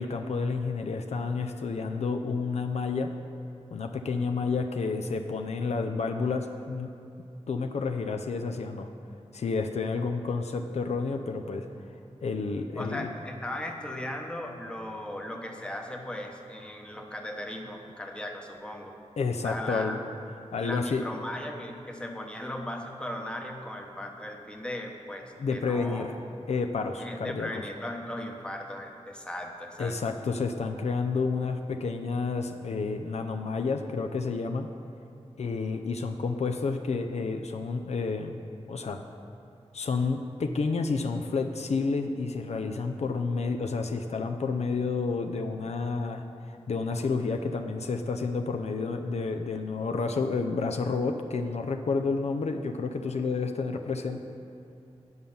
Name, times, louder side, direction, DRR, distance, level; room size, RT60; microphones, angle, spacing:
voice 1, 0.0-3.1 3.7-6.9 7.5-8.9 9.3-11.7 12.2-13.1 19.2-20.0 20.5-21.0 25.4-26.1 26.5-27.6 29.8-34.7 35.4-38.4 38.7-39.0 39.7-54.2, left 4 dB, 70° left, 5 dB, 0.5 m, -30 dB
voice 2, 12.8-18.9 19.4-20.0 20.6-26.1 27.0-30.0, left 1 dB, 10° left, 2 dB, 0.9 m, -37 dB
9.6 x 5.4 x 7.1 m, 2.6 s
wide cardioid pair, 125°, 12 cm